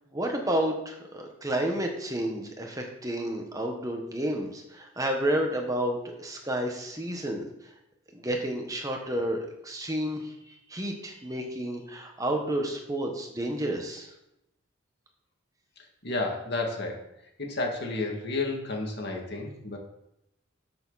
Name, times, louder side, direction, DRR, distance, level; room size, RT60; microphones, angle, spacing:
voice 1, 0.1-7.5 8.1-10.3 10.7-14.1, right 1 dB, 15° right, 2 dB, 1.4 m, -30 dB
voice 2, 15.8-17.1 17.4-19.8, left 2 dB, 55° left, 1 dB, 2.3 m, -32 dB
13.5 x 6.9 x 4.2 m, 0.84 s
head